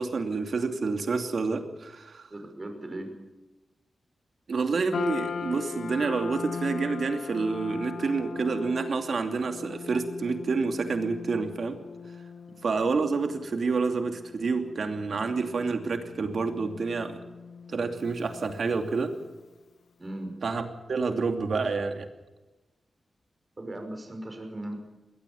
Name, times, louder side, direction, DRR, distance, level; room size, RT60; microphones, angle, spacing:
voice 1, 0.0-2.3 4.5-11.8 12.6-17.2 17.7-19.1 20.4-20.6 20.9-22.1, right 4 dB, 65° right, 6 dB, 2.7 m, -28 dB
voice 2, 2.3-3.1 12.5-12.6 20.0-20.3 23.6-24.8, right 1 dB, 30° right, 5 dB, 5.7 m, -38 dB
sound 1, 4.9-19.3, left 6 dB, 70° left, 0.9 m, -40 dB
21.5 x 18.5 x 7.2 m, 1.1 s
wide cardioid pair, 100°, 0 cm